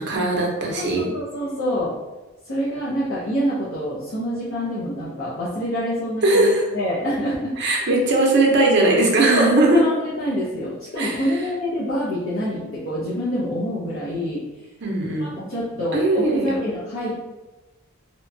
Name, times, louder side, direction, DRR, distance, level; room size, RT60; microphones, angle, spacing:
voice 1, 0.0-1.1 6.2-6.6 7.6-9.8 11.0-11.2 14.8-15.4 15.9-16.6, right 2 dB, 55° right, 0 dB, 0.6 m, -19 dB
voice 2, 0.8-1.9 2.4-8.0 9.3-14.7 15.2-17.1, equal, 65° left, -8 dB, 0.6 m, -26 dB
2.8 x 2.2 x 2.6 m, 1.1 s
head